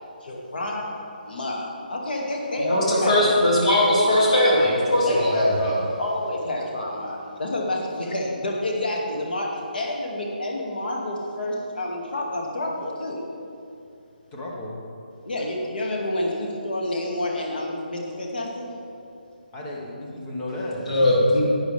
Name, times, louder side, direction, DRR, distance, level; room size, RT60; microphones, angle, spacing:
voice 1, 0.2-0.9 1.2-3.6 5.1-5.2 6.0-13.2 15.3-18.7, left 1 dB, 65° left, -1 dB, 2.2 m, -29 dB
voice 2, 2.5-5.8 20.9-21.4, left 1 dB, 40° left, -5 dB, 2.6 m, -19 dB
voice 3, 14.3-14.8 19.5-21.3, left 1 dB, 10° left, -3 dB, 0.8 m, -33 dB
11.5 x 8.9 x 3.4 m, 2.6 s
hypercardioid pair, 180°, 5 cm